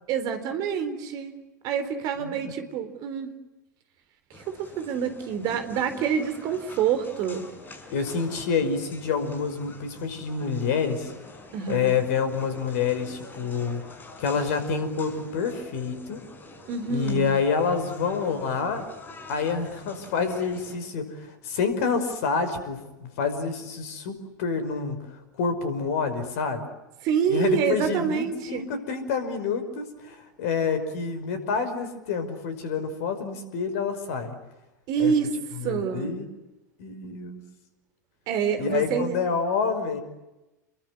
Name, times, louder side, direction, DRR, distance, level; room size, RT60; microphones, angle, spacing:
voice 1, 0.1-1.3 1.6-3.3 4.5-7.4 11.5-11.9 16.7-17.2 27.0-28.6 34.9-35.3 35.6-36.1 38.3-39.1, right 7 dB, 40° right, 9 dB, 4.1 m, -27 dB
voice 2, 2.2-2.6 7.9-11.1 11.7-16.2 16.9-18.9 19.3-26.7 27.3-34.4 35.0-35.1 35.5-36.3 36.8-37.4 38.6-40.0, left 5 dB, 55° left, 10 dB, 5.4 m, -28 dB
sound 1, 4.3-20.8, left 2 dB, 20° left, 6.0 m, -46 dB
30.0 x 23.0 x 8.4 m, 1.0 s
figure-of-eight pair, 85°, 10 cm